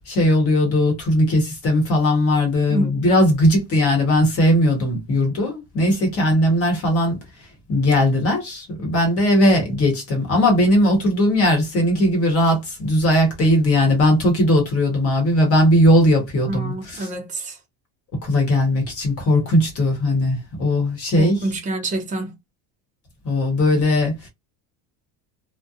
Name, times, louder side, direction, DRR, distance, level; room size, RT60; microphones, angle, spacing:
voice 1, 0.1-7.2 7.7-17.1 18.2-21.4 23.2-24.3, left 1 dB, 30° left, 1.0 m, -18 dB
voice 2, 16.4-17.6 21.2-22.3, right 1 dB, 15° right, 0.5 m, -27 dB
2.5 x 2.1 x 2.7 m
cardioid pair, 160°, 47 cm